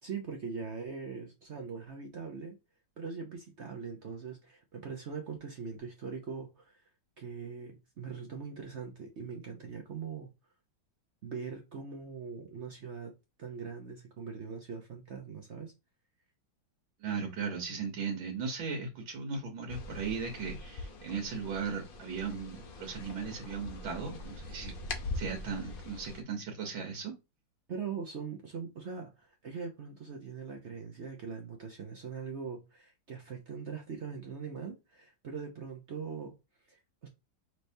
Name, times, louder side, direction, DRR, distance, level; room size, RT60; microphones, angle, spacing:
voice 1, 0.0-2.6 3.0-6.8 7.2-10.3 11.2-15.7 27.7-36.3 36.7-37.1, right 5 dB, 60° right, 0.7 m, -41 dB
voice 2, 17.0-24.7 25.1-27.1, right 5 dB, 85° right, 1.9 m, -37 dB
sound 1, 19.7-26.2, left 2 dB, 60° left, 0.5 m, -42 dB
5.7 x 3.3 x 2.7 m
omnidirectional pair, 2.1 m